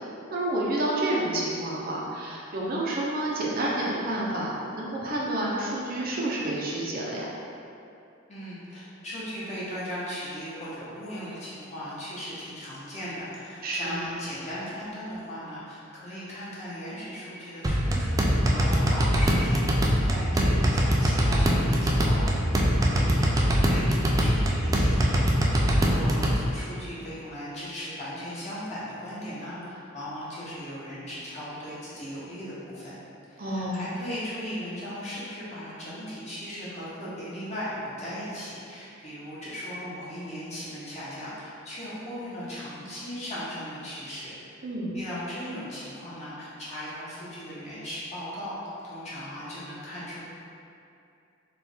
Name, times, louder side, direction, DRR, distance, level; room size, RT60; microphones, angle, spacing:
voice 1, 0.3-4.5 4.8-7.3 13.6-14.1 33.4-33.9 44.6-45.0, right 1 dB, 50° right, -4 dB, 0.7 m, -29 dB
voice 2, 8.3-33.0 33.4-44.6 44.9-50.2, equal, 35° left, -10 dB, 1.1 m, -37 dB
sound 1, 17.6-26.4, equal, 20° right, 0.3 m, -23 dB
4.4 x 2.5 x 3.5 m, 2.6 s
head